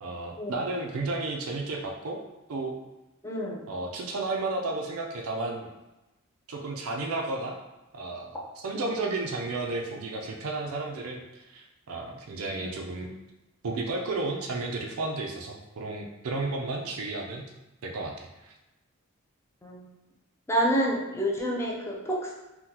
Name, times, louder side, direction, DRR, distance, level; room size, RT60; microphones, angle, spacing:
voice 1, 0.0-2.2 2.5-2.8 3.7-5.7 6.5-7.6 7.9-13.1 13.6-17.4 17.8-18.5, right 3 dB, 75° right, 1 dB, 0.4 m, -33 dB
voice 2, 3.2-3.6 8.7-8.9 12.6-12.8 13.0-13.2 19.6-19.8 20.5-22.3, right 1 dB, 10° left, -2 dB, 0.5 m, -28 dB
3.7 x 2.2 x 2.8 m, 1.0 s
head